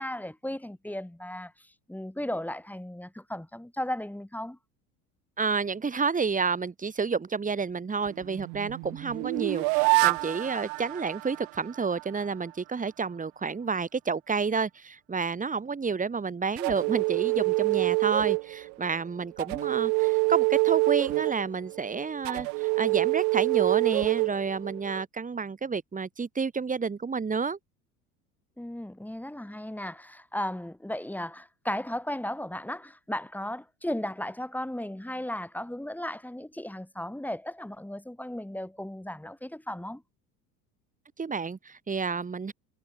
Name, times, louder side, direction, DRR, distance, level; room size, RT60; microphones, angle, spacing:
voice 1, 0.0-4.6 28.6-40.0, left 1 dB, 5° left, 3.9 m, -35 dB
voice 2, 5.4-27.6 41.2-42.5, right 5 dB, 15° right, 2.2 m, -30 dB
sound 1, 8.1-12.0 16.6-18.9 19.4-25.0, right 40 dB or more, 45° right, 0.6 m, -26 dB
figure-of-eight pair, 70°, 48 cm